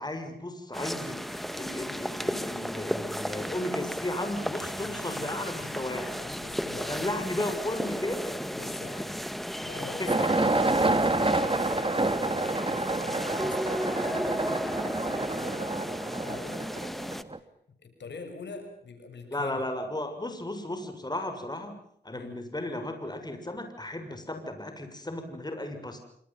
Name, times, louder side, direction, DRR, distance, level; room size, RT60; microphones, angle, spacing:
voice 1, 0.0-6.0 6.9-8.4 9.6-10.3 19.3-21.8 22.0-26.0, left 1 dB, 25° left, 6 dB, 6.8 m, -35 dB
sound 1, 0.7-17.2, equal, ahead, 1.9 m, -34 dB
voice 2, 4.7-7.1 8.5-9.2 9.6-10.4 10.7-17.2 17.8-19.6 22.1-22.4, left 4 dB, 85° left, 6 dB, 6.5 m, -45 dB
sound 2, 10.1-17.4, right 2 dB, 30° right, 2.2 m, -28 dB
27.0 x 26.5 x 5.8 m, 0.67 s
cardioid pair, 60°, 18 cm